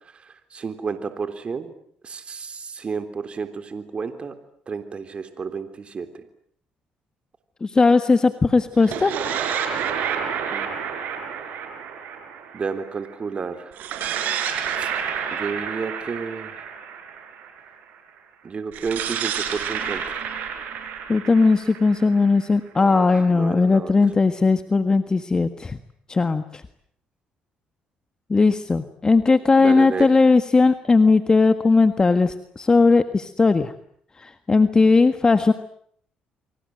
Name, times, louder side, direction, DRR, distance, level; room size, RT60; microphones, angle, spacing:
voice 1, 0.1-1.7 2.0-4.3 4.7-6.2 10.5-10.8 12.5-13.8 14.8-14.9 15.3-16.5 18.4-20.4 22.8-23.9 29.6-30.1, right 5 dB, 40° right, 9 dB, 3.6 m, -31 dB
voice 2, 7.6-9.1 21.1-25.8 26.1-26.4 28.3-33.7 34.2-35.5, left 3 dB, 25° left, 10 dB, 1.6 m, -18 dB
sound 1, 8.7-13.1 13.7-17.7 18.7-22.5, right 7 dB, 75° right, 6.0 m, -29 dB
29.0 x 24.0 x 7.8 m, 0.64 s
cardioid pair, 90°, 3 cm